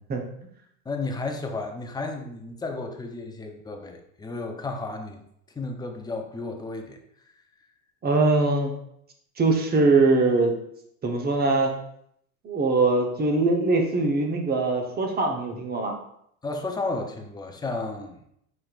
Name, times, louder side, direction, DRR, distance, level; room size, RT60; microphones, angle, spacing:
voice 1, 0.9-5.2 5.5-7.0 16.4-18.2, left 3 dB, 10° left, 4 dB, 0.6 m, -33 dB
voice 2, 8.0-8.7 9.4-10.6 11.0-11.7 12.4-16.0, right 3 dB, 25° right, 2 dB, 0.9 m, -22 dB
5.1 x 4.2 x 2.4 m, 0.72 s
hypercardioid pair, 95°, 40 cm